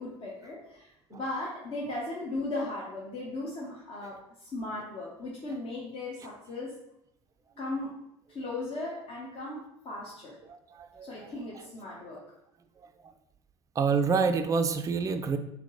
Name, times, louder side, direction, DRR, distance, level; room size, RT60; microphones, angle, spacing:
voice 1, 0.0-4.2 4.5-6.7 7.6-7.9 8.3-10.4 11.0-12.2, left 2 dB, 40° left, -4 dB, 1.0 m, -37 dB
voice 2, 10.5-11.7 13.8-15.4, right 5 dB, 25° right, 7 dB, 0.4 m, -28 dB
3.8 x 2.8 x 3.8 m, 0.78 s
hypercardioid pair, 65°, 14 cm